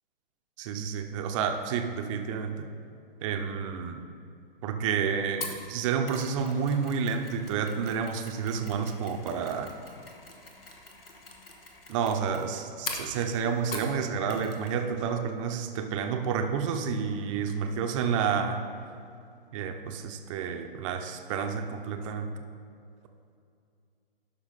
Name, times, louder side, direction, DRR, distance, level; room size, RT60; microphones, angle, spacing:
voice 1, 0.6-2.7 3.2-4.0 4.6-9.7 11.9-18.6 19.5-22.3, right 6 dB, 35° right, 6 dB, 0.6 m, -30 dB
Mechanisms, 5.4-14.0 14.3-14.8 15.0-15.1, left 3 dB, 75° left, 1.4 m, -43 dB
12.0 x 5.6 x 4.0 m, 2.5 s
figure-of-eight pair, 120°, 29 cm